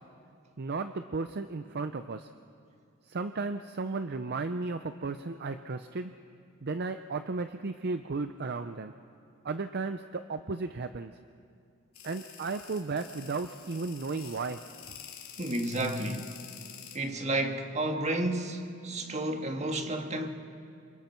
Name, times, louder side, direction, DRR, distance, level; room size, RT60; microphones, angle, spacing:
voice 1, 0.6-2.3 3.1-6.1 6.6-8.9 9.4-11.1 12.0-14.6, right 3 dB, 50° right, 0.6 m, -34 dB
sound 1, 11.9-17.0, left 9 dB, 85° left, 3.1 m, -48 dB
voice 2, 15.4-16.4 16.9-20.3, right 1 dB, 30° right, 1.6 m, -31 dB
28.0 x 27.0 x 4.5 m
head